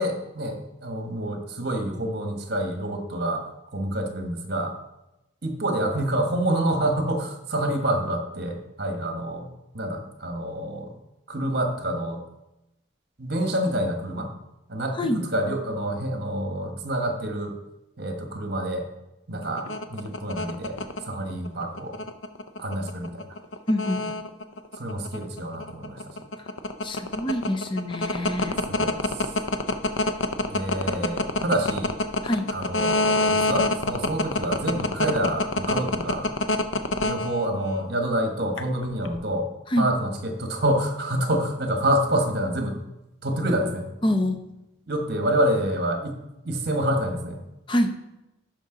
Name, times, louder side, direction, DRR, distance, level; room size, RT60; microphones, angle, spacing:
voice 1, 0.0-3.4 3.7-4.7 5.4-10.9 11.3-12.2 13.2-14.3 14.7-17.5 18.0-18.9 19.3-20.8 21.0-22.0 22.6-23.2 24.8-26.1 28.7-29.1 30.5-31.9 32.5-36.3 37.0-39.5 39.8-42.8 43.2-43.9 44.9-46.2 46.4-47.4, right 1 dB, 50° right, 4 dB, 1.3 m, -27 dB
sound 1, 19.4-37.8 38.6-39.1, left 2 dB, 75° left, 0.6 m, -25 dB
voice 2, 23.7-24.2 26.8-28.5 32.2-32.5 39.7-39.9 44.0-44.4 47.7-47.9, left 1 dB, 25° left, 7 dB, 0.6 m, -25 dB
12.0 x 5.1 x 3.8 m, 0.93 s
head